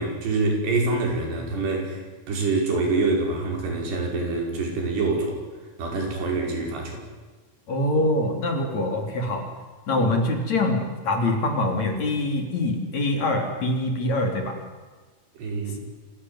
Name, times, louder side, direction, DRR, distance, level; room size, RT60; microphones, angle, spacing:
voice 1, 0.0-5.4 5.8-7.0 15.4-15.8, right 3 dB, 85° right, 1 dB, 7.7 m, -26 dB
voice 2, 7.7-9.5 9.9-14.6, left 2 dB, 45° left, 4 dB, 4.3 m, -24 dB
27.0 x 17.0 x 9.6 m, 1.3 s
omnidirectional pair, 4.7 m